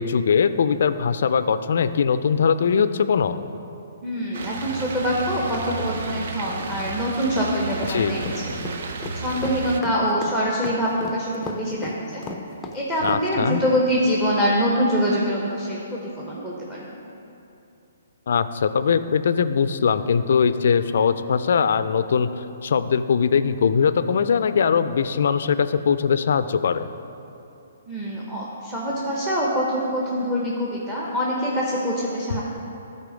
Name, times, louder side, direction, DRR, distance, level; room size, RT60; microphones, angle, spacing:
voice 1, 0.0-3.4 7.9-8.2 13.0-13.6 18.3-26.9, left 6 dB, 65° left, 12 dB, 0.3 m, -21 dB
voice 2, 4.0-8.2 9.1-12.2 12.7-16.9 27.9-32.4, equal, 10° right, -5 dB, 1.0 m, -24 dB
sound 1, 4.3-9.8, right 3 dB, 60° right, 0.6 m, -32 dB
sound 2, 7.8-13.2, left 3 dB, 10° left, 0.5 m, -35 dB
10.5 x 4.2 x 5.1 m, 2.8 s
hypercardioid pair, 150°, 0 cm